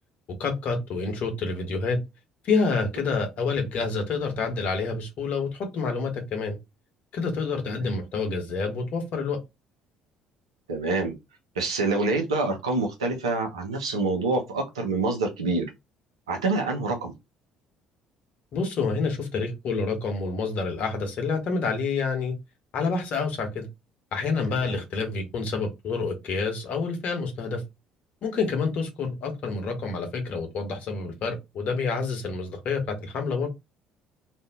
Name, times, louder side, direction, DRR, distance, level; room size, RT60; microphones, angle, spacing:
voice 1, 0.4-2.0 2.4-6.6 7.1-9.4 18.5-22.3 22.7-23.7 24.1-27.6 28.2-33.5, left 4 dB, 50° left, 1.0 m, -28 dB
voice 2, 10.7-11.1 11.6-15.7 16.3-17.1 24.5-24.8, right 3 dB, 80° right, 0.7 m, -26 dB
2.6 x 2.4 x 3.5 m
figure-of-eight pair, 55°, 3 cm